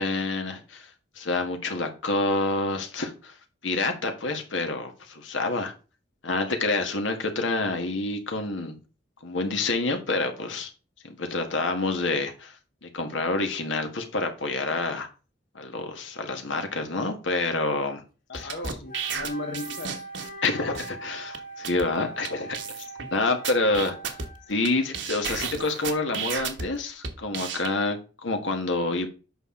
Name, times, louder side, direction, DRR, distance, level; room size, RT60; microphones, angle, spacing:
voice 1, 0.0-3.3 3.6-5.7 6.2-8.8 9.2-10.7 11.0-12.6 12.8-15.1 15.6-18.0 18.3-18.8 20.4-24.1 24.5-29.1, left 3 dB, 80° left, 1.6 m, -28 dB
voice 2, 18.3-20.0, left 1 dB, 65° left, 1.0 m, -36 dB
sound 1, 18.3-20.5 20.7-20.9 21.3-21.4 21.6-21.9 22.2-22.3 22.5-23.1 23.4-24.7 24.9-26.7 27.0-27.7, right 6 dB, 65° right, 1.3 m, -32 dB
Wind instrument woodwind instrument, 18.9-24.8, right 2 dB, 50° left, 1.6 m, -41 dB
8.1 x 5.8 x 3.8 m
head